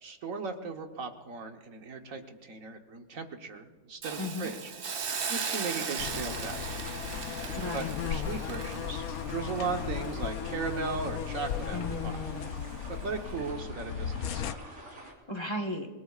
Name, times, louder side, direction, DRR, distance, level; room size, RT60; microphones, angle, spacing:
voice 1, 0.0-6.8 7.7-12.2 12.9-14.6, right 4 dB, 70° right, 5 dB, 1.6 m, -37 dB
Hiss, 4.0-11.1 11.4-11.6, right 6 dB, 45° right, 1.0 m, -38 dB
voice 2, 4.2-4.5 7.6-7.9 11.7-12.7 15.3-15.9, left 1 dB, 20° left, 4 dB, 1.2 m, -35 dB
sound 1, 6.0-14.6, left 8 dB, 85° left, 1.1 m, -36 dB
sound 2, 6.3-15.1, right 1 dB, 90° right, 4.3 m, -48 dB
28.0 x 19.0 x 2.4 m, 1.4 s
omnidirectional pair, 1.5 m